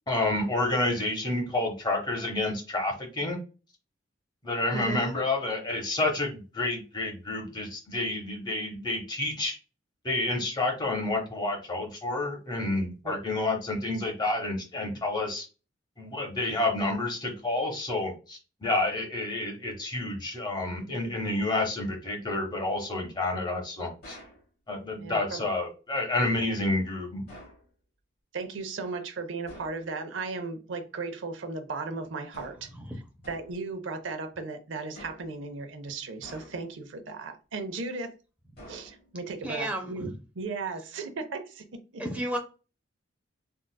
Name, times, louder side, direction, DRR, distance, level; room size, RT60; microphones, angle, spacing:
voice 1, 0.1-3.4 4.4-9.6 10.0-15.5 16.0-24.2 24.7-27.2, left 2 dB, 20° left, 0.8 m, -29 dB
voice 2, 4.7-5.1 13.0-13.2 25.0-25.5 28.3-32.7 33.3-38.1 38.7-40.1 40.4-42.0, right 3 dB, 80° right, 0.5 m, -36 dB
sound 1, 24.0-24.5 27.3-27.7 29.5-29.8 32.3-32.7 33.2-33.6 34.9-35.4 36.2-36.8 38.6-39.2, equal, 55° left, 1.2 m, -48 dB
voice 3, 39.4-40.1 42.0-42.4, right 1 dB, 5° right, 0.5 m, -32 dB
3.7 x 2.3 x 2.2 m
head